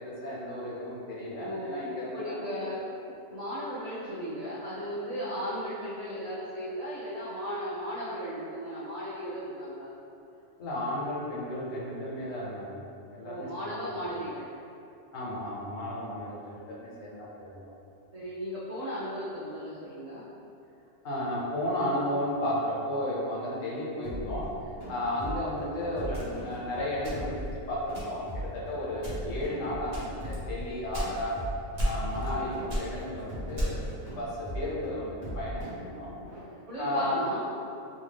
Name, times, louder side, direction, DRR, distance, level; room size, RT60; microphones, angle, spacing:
voice 1, 0.0-2.7 10.6-13.9 15.1-17.7 21.0-24.5 24.9-31.4 31.8-36.1 36.8-37.2, left 1 dB, 85° left, -6 dB, 1.1 m, -33 dB
voice 2, 1.4-1.8 2.1-9.9 13.2-14.5 18.1-20.2 32.1-32.5 36.7-37.5, equal, 75° right, -9 dB, 0.3 m, -36 dB
sound 1, 24.0-36.4, equal, 20° left, 0.8 m, -39 dB
sound 2, 26.1-27.5 27.9-28.4 28.9-29.4 29.9-31.4 31.8-32.4 32.7-34.0, equal, 40° right, 0.7 m, -33 dB
2.6 x 2.2 x 3.3 m, 2.7 s
omnidirectional pair, 1.3 m